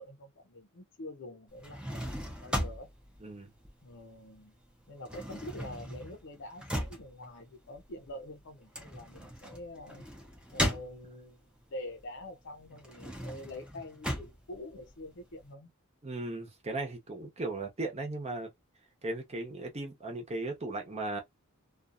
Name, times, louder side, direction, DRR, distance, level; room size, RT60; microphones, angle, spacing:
voice 1, 0.0-2.9 3.8-4.5 4.9-10.1 10.5-11.4 11.7-15.7, left 1 dB, 60° left, 0.7 m, -46 dB
sound 1, 1.5-4.3 4.6-11.4 11.9-15.4, equal, 5° right, 0.7 m, -38 dB
voice 2, 3.2-3.5 16.0-18.5 19.0-21.2, right 2 dB, 30° right, 0.9 m, -37 dB
2.6 x 2.4 x 2.5 m
head